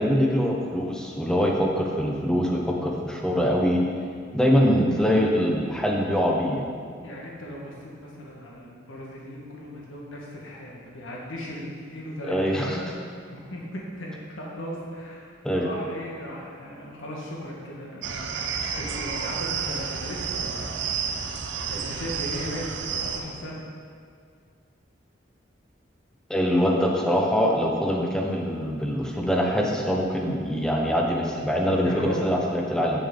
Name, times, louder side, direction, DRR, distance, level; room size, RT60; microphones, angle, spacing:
voice 1, 0.0-3.8 4.3-6.7 12.3-12.8 15.4-15.7 26.3-33.0, equal, 5° left, -1 dB, 0.7 m, -23 dB
voice 2, 7.0-12.9 13.3-20.8 21.1-23.6 31.8-32.4, equal, 85° left, -3 dB, 1.3 m, -37 dB
sound 1, 18.0-23.2, right 6 dB, 70° right, 0.6 m, -30 dB
8.4 x 7.0 x 3.7 m, 2.1 s
head